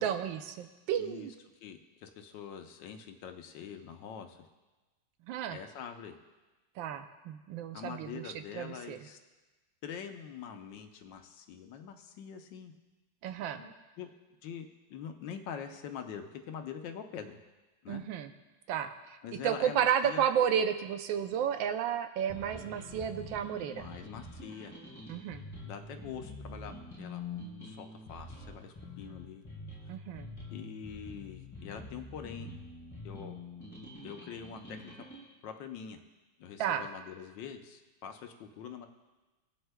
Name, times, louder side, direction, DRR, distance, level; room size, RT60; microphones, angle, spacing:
voice 1, 0.0-1.3 5.3-5.6 6.8-9.0 13.2-13.6 17.9-18.3 18.7-19.2 19.4-23.9 25.1-25.4 29.9-30.3 36.6-36.9, right 9 dB, 85° right, 9 dB, 1.3 m, -32 dB
voice 2, 1.0-1.3 1.6-4.5 5.5-6.2 7.7-9.2 9.8-12.7 13.5-14.1 14.4-17.4 17.8-18.0 19.2-20.2 23.7-24.7 25.6-27.2 27.6-29.4 30.5-32.6 33.0-33.4 34.0-35.1 35.4-36.0 36.4-38.9, left 7 dB, 75° left, 6 dB, 1.4 m, -44 dB
sound 1, 22.3-35.2, left 2 dB, 15° left, 2.9 m, -46 dB
18.5 x 7.8 x 2.2 m, 1.2 s
omnidirectional pair, 2.1 m